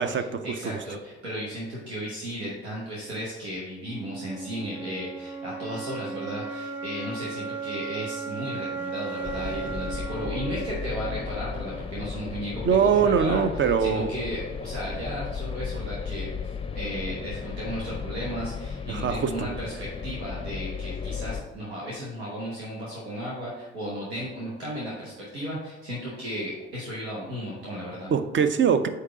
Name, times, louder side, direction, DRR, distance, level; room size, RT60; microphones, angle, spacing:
voice 1, 0.0-0.8 12.6-14.1 18.9-19.5 28.1-28.9, right 7 dB, 35° right, 10 dB, 0.6 m, -23 dB
voice 2, 0.5-13.4 13.8-16.3 16.7-28.1, equal, 85° right, -6 dB, 1.2 m, -35 dB
sound 1, 3.8-11.8, right 4 dB, 5° right, 1.1 m, -36 dB
sound 2, 9.2-21.4, left 6 dB, 15° left, 0.6 m, -35 dB
8.1 x 2.8 x 4.8 m, 1.1 s
figure-of-eight pair, 45°, 32 cm